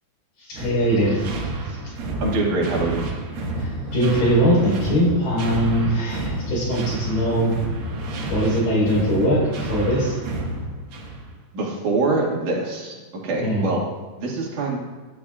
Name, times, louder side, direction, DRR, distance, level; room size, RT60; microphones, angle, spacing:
voice 1, 0.5-1.3 3.6-7.6 8.3-10.2 13.4-13.7, equal, 85° left, -6 dB, 6.3 m, -21 dB
sound 1, 0.6-11.3, right 2 dB, 85° right, 3.4 m, -30 dB
voice 2, 2.2-3.1 11.5-13.0 13.2-13.8 14.2-14.8, right 3 dB, 65° right, -2 dB, 3.4 m, -24 dB
16.5 x 13.5 x 2.5 m, 1.3 s
omnidirectional pair, 3.9 m